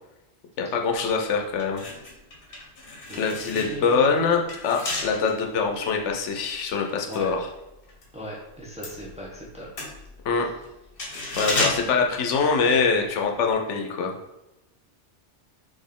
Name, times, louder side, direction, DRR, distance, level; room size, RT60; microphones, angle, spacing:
voice 1, 0.6-1.8 3.2-7.5 10.2-10.5 11.4-14.1, left 5 dB, 90° left, 2 dB, 1.0 m, -24 dB
sound 1, 1.1-1.2 1.5-8.1 8.4-13.1 13.3-13.5, left 2 dB, 55° left, 1.1 m, -33 dB
voice 2, 3.1-4.2 7.1-7.3 8.1-9.7 10.3-10.5, right 1 dB, 5° right, -4 dB, 0.8 m, -38 dB
4.1 x 3.4 x 3.6 m, 0.93 s
omnidirectional pair, 1.2 m